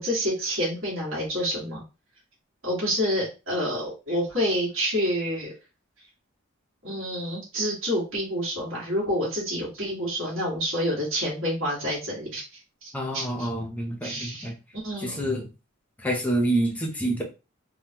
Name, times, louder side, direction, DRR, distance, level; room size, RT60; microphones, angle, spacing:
voice 1, 0.0-1.8 2.6-5.5 6.8-12.4 12.8-13.5 14.0-15.2, equal, 65° right, -6 dB, 1.7 m, -28 dB
voice 2, 12.9-14.5 15.0-15.5 16.0-17.2, right 1 dB, 5° left, 0 dB, 0.7 m, -27 dB
3.6 x 2.2 x 2.9 m, 0.30 s
head